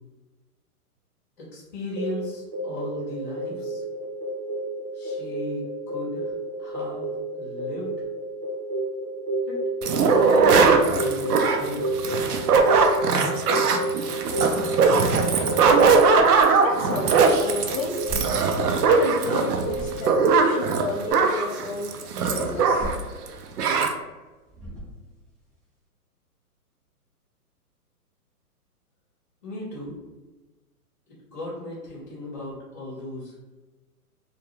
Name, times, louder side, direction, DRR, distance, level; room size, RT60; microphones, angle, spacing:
voice 1, 1.4-3.8 4.9-6.3 6.6-7.9 9.4-9.5 9.8-11.9 29.4-30.0 31.3-33.3, left 1 dB, 15° left, -16 dB, 0.4 m, -36 dB
sound 1, 2.0-21.1, right 1 dB, 40° right, 1.0 m, -31 dB
sound 2, 9.8-23.0 23.3-23.4 23.6-23.9, right 4 dB, 80° right, 0.5 m, -20 dB
voice 2, 16.5-18.0 18.9-21.9 22.2-22.9, left 3 dB, 60° left, 1 dB, 0.7 m, -32 dB
sound 3, 18.0-19.3 19.5-20.3 22.5-23.7 24.5-25.3, equal, 20° right, 0.7 m, -37 dB
2.3 x 2.2 x 2.9 m, 1.2 s
hypercardioid pair, 145°, 46 cm